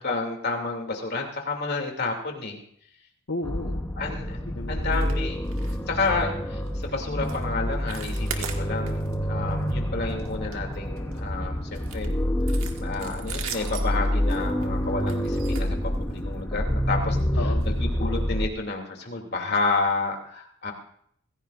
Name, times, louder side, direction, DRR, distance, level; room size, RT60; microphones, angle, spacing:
voice 1, 0.0-2.6 4.0-4.4 4.7-5.4 5.9-12.2 12.5-17.2 17.6-20.7, left 3 dB, 50° left, 2 dB, 2.6 m, -30 dB
voice 2, 3.3-3.8 4.5-4.9 17.4-17.7, left 2 dB, 65° left, 2 dB, 1.2 m, -33 dB
sound 1, 3.4-18.5, equal, 10° left, 0.8 m, -27 dB
sound 2, 4.9-5.2 5.4-5.8 6.0-6.2 6.7-6.9 7.2-7.4 7.7-9.1 9.5-9.7 10.1-11.2 11.7-16.3 17.1-17.2 17.6-17.7 18.1-18.2, right 7 dB, 75° right, 1.8 m, -39 dB
25.5 x 16.0 x 2.5 m, 0.66 s
head